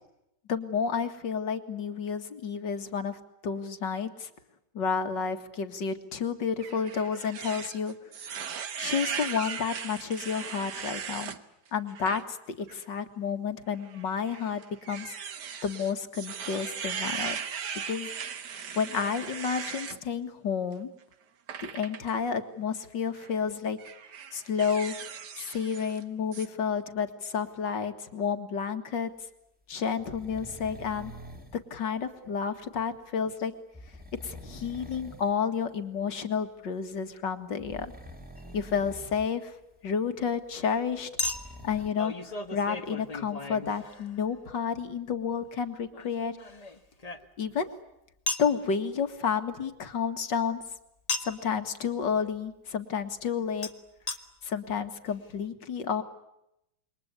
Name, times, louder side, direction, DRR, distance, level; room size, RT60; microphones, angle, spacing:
voice 1, 0.5-4.3 4.7-7.9 8.8-11.3 11.7-14.6 14.9-15.1 15.6-17.4 17.9-18.1 18.8-20.9 21.6-23.8 24.3-25.0 25.4-29.1 29.7-31.1 31.5-33.5 34.2-37.9 38.5-39.5 39.8-41.1 41.6-46.4 47.4-47.7 48.4-50.6 51.2-53.7 54.4-56.0, left 6 dB, 60° left, 8 dB, 2.5 m, -31 dB
sound 1, 6.6-11.4 11.9-12.2 12.7-12.8 13.8-20.0 21.5-22.1 23.1-23.3 23.8-26.0 26.3-26.5, right 7 dB, 60° right, 1.8 m, -38 dB
sound 2, 30.0-31.6 33.7-35.3 35.7-35.8 37.6-39.3 39.5-39.6 41.0-41.9, equal, 5° right, 2.9 m, -46 dB
Chink clink, 38.4-38.5 41.2-44.4 45.9-47.6 48.3-48.5 51.1-51.5 53.6-53.7 54.1-54.2 54.8-54.9 55.1-55.2, left 2 dB, 20° left, 1.5 m, -35 dB
28.0 x 23.5 x 8.3 m, 0.84 s
omnidirectional pair, 2.2 m